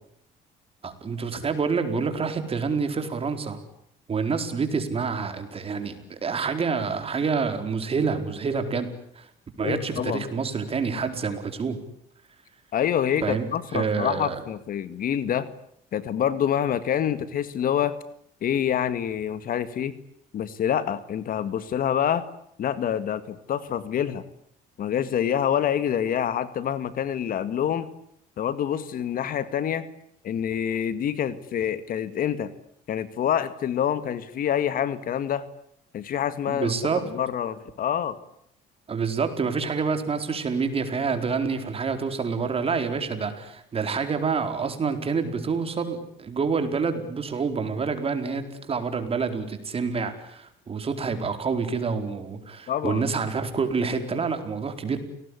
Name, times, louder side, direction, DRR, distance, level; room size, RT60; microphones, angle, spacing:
voice 1, 0.8-3.6 4.1-8.9 9.2-9.3 9.6-11.8 13.2-13.5 13.7-14.4 36.5-37.0 38.9-55.0, right 5 dB, 35° right, 8 dB, 4.6 m, -27 dB
voice 2, 9.6-10.3 12.7-15.5 15.9-17.9 18.4-20.0 20.3-22.2 22.6-24.2 24.8-27.9 28.4-29.9 30.2-32.5 32.9-35.4 35.9-36.7 37.1-38.2 52.7-53.0, left 9 dB, 55° left, 14 dB, 2.0 m, -26 dB
29.0 x 19.0 x 10.0 m, 0.73 s
cardioid pair, 110°, 17 cm